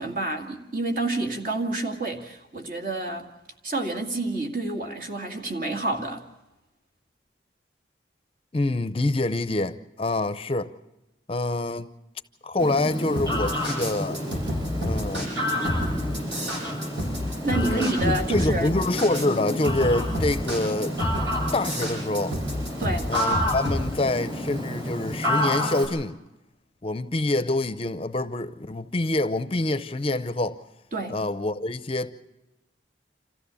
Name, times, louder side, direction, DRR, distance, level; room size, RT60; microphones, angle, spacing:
voice 1, 0.0-3.3 3.6-6.2 17.4-18.7 22.8-23.1 30.9-31.2, right 2 dB, 50° right, 2.2 m, -29 dB
voice 2, 8.5-10.7 11.3-11.9 12.4-14.2 14.8-15.3 17.5-21.0 21.5-22.4 23.1-26.2 26.8-30.6 31.1-32.1, left 2 dB, 30° left, 0.6 m, -26 dB
Fowl, 12.6-25.8, equal, 25° right, 6.5 m, -30 dB
sound 1, 13.1-23.8, equal, 75° right, 7.3 m, -29 dB
27.0 x 15.0 x 7.0 m
head